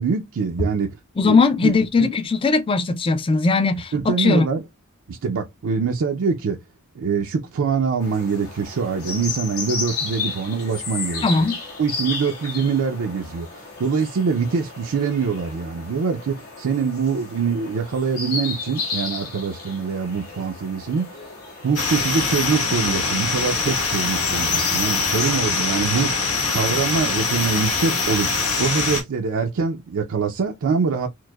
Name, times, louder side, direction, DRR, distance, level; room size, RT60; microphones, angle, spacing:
voice 1, 0.0-1.7 2.0-2.1 3.9-4.6 5.1-6.6 7.0-11.4 11.8-21.1 21.6-31.1, right 5 dB, 65° right, 0.4 m, -24 dB
voice 2, 1.2-4.5 11.2-11.6, left 4 dB, 25° left, 0.4 m, -19 dB
sound 1, 8.0-27.9, left 4 dB, 75° left, 1.5 m, -33 dB
sound 2, 21.7-29.0, left 4 dB, 90° left, 1.3 m, -23 dB
4.5 x 2.0 x 2.2 m
head